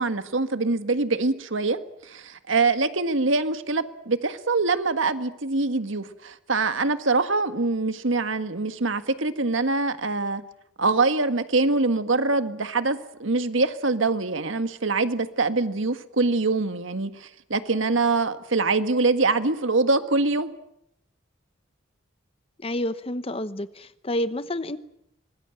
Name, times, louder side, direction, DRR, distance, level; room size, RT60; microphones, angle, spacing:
voice 1, 0.0-10.4 10.8-20.5, right 3 dB, 75° right, 10 dB, 1.6 m, -24 dB
voice 2, 22.6-24.8, left 1 dB, 30° left, 14 dB, 0.9 m, -29 dB
25.0 x 20.5 x 9.0 m, 0.80 s
head